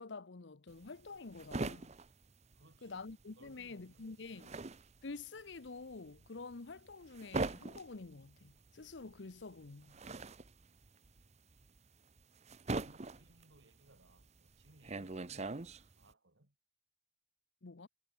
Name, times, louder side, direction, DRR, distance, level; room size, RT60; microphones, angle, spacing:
voice 1, 0.0-1.9 2.8-4.5 5.0-10.0 17.6-17.9, left 3 dB, 70° left, 0.9 m, -48 dB
sound 1, 0.7-3.2 3.5-16.1, right 3 dB, 35° right, 0.8 m, -42 dB
voice 2, 2.5-3.1 3.4-4.6 12.7-16.6, right 1 dB, 75° right, 3.9 m, -65 dB
head